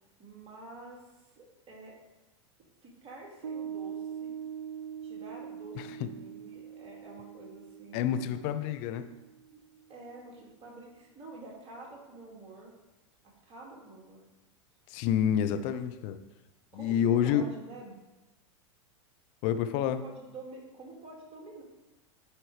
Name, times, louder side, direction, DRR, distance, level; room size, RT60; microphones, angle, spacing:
voice 1, 0.2-1.0 1.4-2.0 2.8-4.4 5.0-8.5 9.5-9.6 9.9-12.7 13.4-14.2 16.7-16.9 17.2-18.0 19.8-21.6, right 2 dB, 35° right, -2 dB, 2.2 m, -48 dB
Piano, 3.4-10.2, right 8 dB, 80° right, 0.5 m, -43 dB
voice 2, 5.7-6.1 7.9-9.0 14.9-16.2 16.7-17.4 19.4-20.0, left 9 dB, 50° left, 9 dB, 0.6 m, -28 dB
9.7 x 4.5 x 3.3 m, 1.0 s
hypercardioid pair, 90°, 16 cm